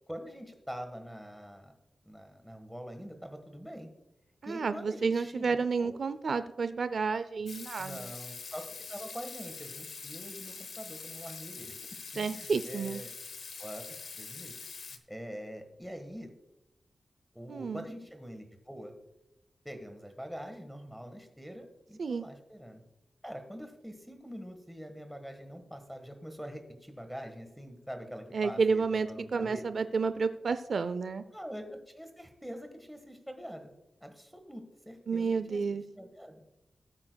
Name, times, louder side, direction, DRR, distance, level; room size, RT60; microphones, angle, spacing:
voice 1, 0.1-1.7 2.0-3.9 4.4-6.0 7.8-11.8 12.1-13.1 13.6-14.5 14.9-16.3 17.3-18.9 19.6-22.8 23.2-28.8 29.1-29.6 31.3-33.7 34.0-35.6 35.9-36.4, equal, ahead, 6 dB, 1.4 m, -44 dB
voice 2, 4.4-8.0 12.2-13.0 17.5-17.8 22.0-22.3 28.3-31.2 35.1-35.8, right 5 dB, 60° right, 12 dB, 0.4 m, -30 dB
Water tap faucet / Sink (filling or washing), 7.5-15.0, left 5 dB, 80° left, 0.9 m, -44 dB
17.5 x 8.6 x 2.3 m, 0.88 s
wide cardioid pair, 135°, 0 cm